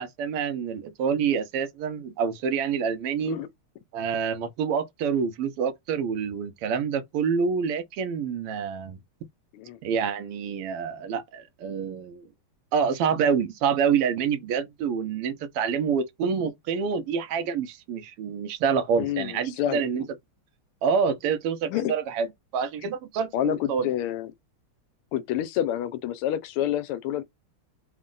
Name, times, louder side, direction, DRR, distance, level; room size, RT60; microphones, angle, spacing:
voice 1, 0.0-3.4 3.9-9.0 9.8-12.2 12.7-20.0 20.8-22.3 22.5-23.9, right 6 dB, 90° right, 1.7 m, -27 dB
voice 2, 19.0-19.9 21.7-21.9 23.3-24.3 25.1-27.2, left 11 dB, 85° left, 1.5 m, -28 dB
4.2 x 2.1 x 3.7 m
omnidirectional pair, 2.4 m